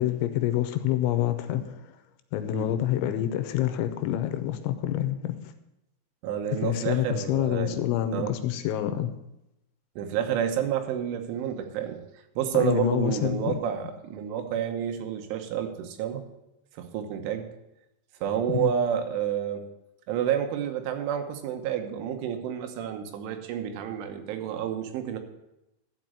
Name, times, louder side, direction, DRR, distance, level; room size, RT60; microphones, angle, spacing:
voice 1, 0.0-1.9 2.3-5.4 6.6-9.1 12.5-13.6 18.5-18.7, left 12 dB, 80° left, 10 dB, 3.0 m, -27 dB
voice 2, 6.2-8.3 10.0-12.0 12.4-16.2 16.7-17.5 18.2-19.6 20.1-25.2, right 9 dB, 85° right, 7 dB, 3.5 m, -29 dB
13.0 x 5.1 x 9.0 m, 0.89 s
omnidirectional pair, 5.6 m